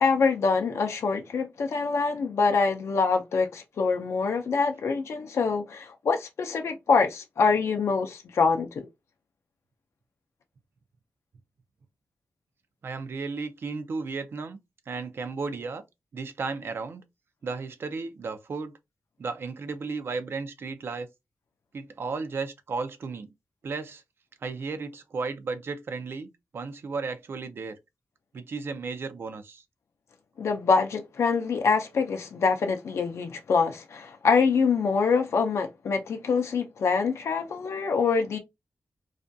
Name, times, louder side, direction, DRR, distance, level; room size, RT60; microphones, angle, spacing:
voice 1, 0.0-8.9 30.4-38.4, left 5 dB, 65° left, 0.4 m, -25 dB
voice 2, 12.8-14.6 14.9-15.8 16.1-17.0 17.4-18.7 19.2-21.1 21.7-23.3 23.6-24.0 24.4-26.3 26.5-27.8 28.3-29.6, right 4 dB, 50° right, 0.4 m, -34 dB
2.4 x 2.2 x 2.5 m
wide cardioid pair, 175°, 5 cm